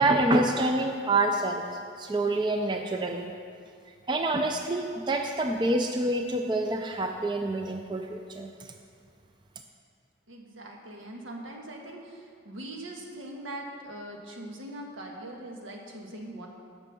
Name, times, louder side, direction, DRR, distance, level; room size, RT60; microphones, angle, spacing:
voice 1, 0.0-1.6 2.0-3.3 4.1-8.5, right 2 dB, 25° right, 4 dB, 0.4 m, -27 dB
voice 2, 10.3-16.5, right 1 dB, 85° right, 0 dB, 1.5 m, -41 dB
10.0 x 6.2 x 6.9 m, 2.2 s
head